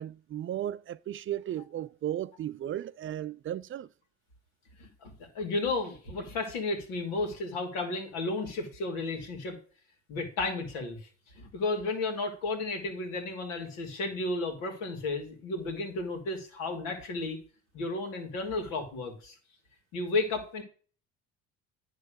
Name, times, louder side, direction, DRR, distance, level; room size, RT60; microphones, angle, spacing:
voice 1, 0.0-3.9, right 11 dB, 40° right, 0.4 m, -35 dB
voice 2, 4.8-9.6 10.1-11.0 11.3-17.4 17.7-19.4 19.9-20.6, left 3 dB, 85° left, 2.6 m, -33 dB
9.8 x 3.8 x 6.5 m
supercardioid pair, 80°, 32 cm